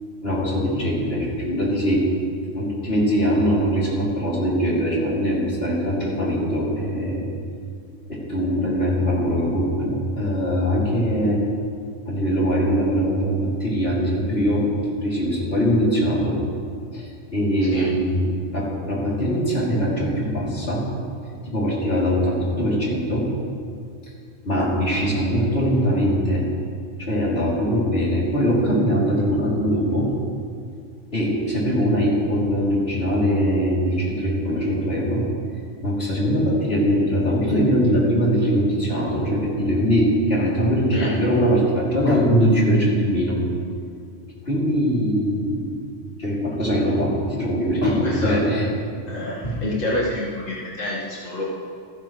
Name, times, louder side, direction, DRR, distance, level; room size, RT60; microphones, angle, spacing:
voice 1, 0.2-2.0 2.5-7.3 8.1-11.4 12.1-14.7 15.0-16.4 16.9-20.9 21.4-23.3 24.5-26.5 27.0-30.1 31.1-35.3 35.8-43.4 44.5-45.7 46.2-48.7 49.4-49.5, equal, 50° left, -6 dB, 3.5 m, -22 dB
voice 2, 47.8-48.3 49.1-51.4, left 1 dB, 85° left, -7 dB, 2.3 m, -27 dB
28.0 x 10.5 x 3.3 m, 2.3 s
omnidirectional pair, 1.3 m